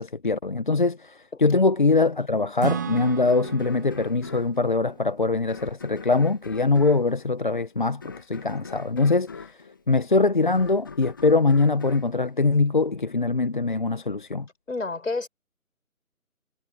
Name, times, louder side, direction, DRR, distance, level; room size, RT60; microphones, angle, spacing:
voice 1, 0.0-9.3 9.9-14.5, left 3 dB, 35° left, 1.2 m, -22 dB
Acoustic guitar / Strum, 2.6-6.2, right 8 dB, 10° right, 1.8 m, -35 dB
sound 1, 3.0-13.2, left 5 dB, 15° left, 1.5 m, -44 dB
voice 2, 14.7-15.3, left 3 dB, 60° left, 5.7 m, -29 dB
figure-of-eight pair, 165°, 43 cm